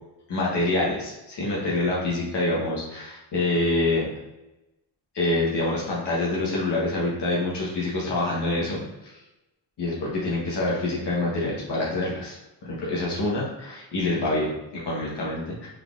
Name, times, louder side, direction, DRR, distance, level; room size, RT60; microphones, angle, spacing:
voice 1, 0.3-4.1 5.1-9.1 9.8-12.3 12.6-15.7, left 2 dB, 60° left, -5 dB, 1.2 m, -26 dB
4.3 x 3.6 x 2.4 m, 0.99 s
cardioid pair, 120°, 48 cm